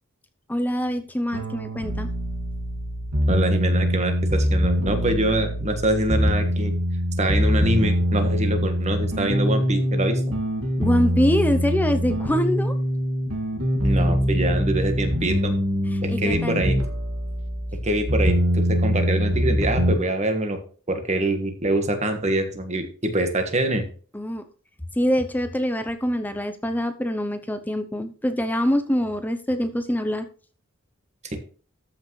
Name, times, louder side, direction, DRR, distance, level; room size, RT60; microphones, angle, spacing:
voice 1, 0.5-2.1 10.8-12.7 15.9-16.6 24.1-24.4 25.0-30.3, equal, 10° left, 8 dB, 0.6 m, -24 dB
sound 1, 1.3-20.0, equal, 85° right, 2.2 m, -23 dB
voice 2, 3.3-6.7 7.2-10.2 13.8-15.5 16.0-16.7 17.8-20.6 20.9-23.9 31.3-31.4, right 1 dB, 30° right, 6 dB, 1.5 m, -24 dB
13.5 x 5.9 x 3.2 m, 0.41 s
head